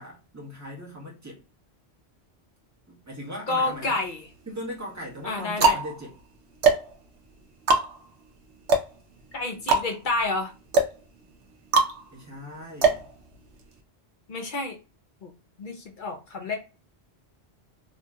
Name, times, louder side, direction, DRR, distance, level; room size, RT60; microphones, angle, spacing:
voice 1, 0.0-1.4 2.9-4.0 4.5-6.2 12.1-13.1, equal, 15° right, 1.1 m, -39 dB
voice 2, 3.5-4.2 5.2-5.8 9.3-10.5 14.3-14.8 15.2-15.3 15.6-16.6, left 3 dB, 55° left, 0.7 m, -29 dB
sound 1, 3.7-4.4 5.0-13.8, right 4 dB, 80° right, 0.9 m, -25 dB
2.7 x 2.6 x 2.3 m
omnidirectional pair, 1.1 m